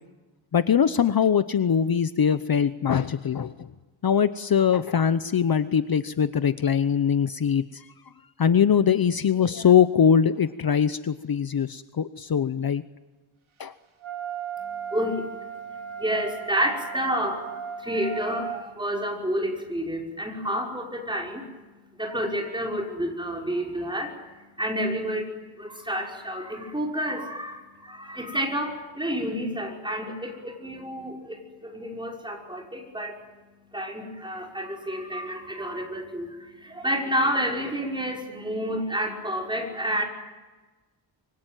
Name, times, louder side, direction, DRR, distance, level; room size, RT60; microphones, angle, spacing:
voice 1, 0.5-3.7 4.0-7.9 8.4-12.8 13.6-13.7, left 7 dB, 50° left, 12 dB, 0.9 m, -22 dB
Wind instrument woodwind instrument, 14.0-18.6, right 8 dB, 75° right, 2.9 m, -36 dB
voice 2, 14.9-21.5 22.0-24.1 24.6-33.2 33.7-40.0, equal, 10° right, 0 dB, 5.5 m, -30 dB
25.5 x 24.5 x 9.2 m, 1.2 s
wide cardioid pair, 150°, 47 cm